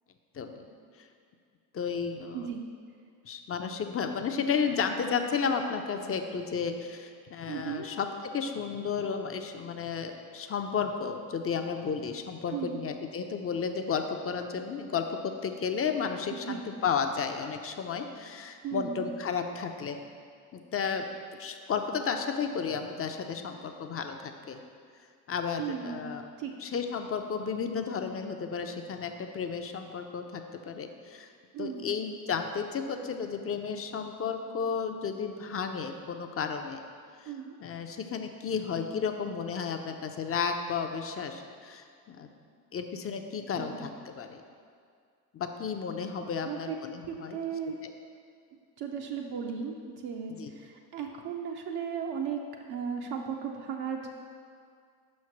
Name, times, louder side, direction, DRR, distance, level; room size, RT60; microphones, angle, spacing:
voice 1, 0.3-0.7 1.7-2.5 3.2-8.1 8.3-20.0 20.5-21.1 21.4-24.6 25.3-26.2 26.6-31.3 31.6-36.8 37.2-37.3 37.6-42.3 42.7-44.4 45.3-47.4 47.8-47.9 50.3-50.5, left 6 dB, 30° left, 6 dB, 0.5 m, -33 dB
voice 2, 7.5-7.9 12.5-12.8 16.5-16.7 18.6-19.1 25.6-26.1 26.4-26.5 31.5-31.9 37.3-37.6 43.6-43.9 46.2-46.8 47.1-47.8 48.8-52.4 52.7-54.1, right 7 dB, 55° right, 1 dB, 0.6 m, -36 dB
5.6 x 3.2 x 5.7 m, 2.2 s
hypercardioid pair, 50°, 46 cm